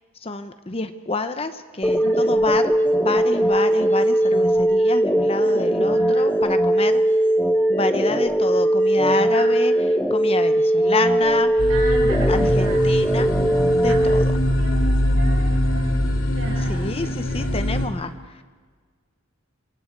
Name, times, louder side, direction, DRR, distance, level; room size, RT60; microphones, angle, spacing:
voice 1, 0.2-2.7 3.0-7.0 7.7-9.7 10.1-11.7 12.3-13.3 13.8-14.3 16.7-18.4, left 3 dB, 30° left, 10 dB, 0.9 m, -28 dB
sound 1, 1.8-14.2, right 1 dB, 10° left, 1.4 m, -19 dB
voice 2, 2.0-2.4 5.4-6.4 9.2-9.5 11.7-18.1, right 2 dB, 60° right, -1 dB, 7.2 m, -37 dB
sound 2, 11.6-17.9, equal, 70° left, 2.7 m, -22 dB
27.5 x 23.0 x 4.7 m, 1.5 s
head